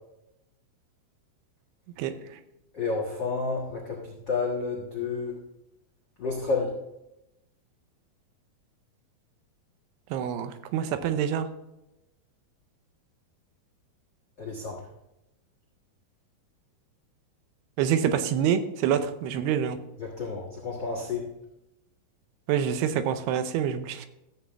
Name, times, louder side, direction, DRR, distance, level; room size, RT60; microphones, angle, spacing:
voice 1, 2.0-2.4 10.1-11.5 17.8-19.8 22.5-24.1, right 9 dB, 85° right, 10 dB, 2.7 m, -26 dB
voice 2, 2.7-5.3 6.2-6.7 14.4-14.8 20.0-21.3, left 4 dB, 70° left, -4 dB, 1.0 m, -30 dB
13.5 x 7.5 x 3.4 m, 0.91 s
omnidirectional pair, 4.6 m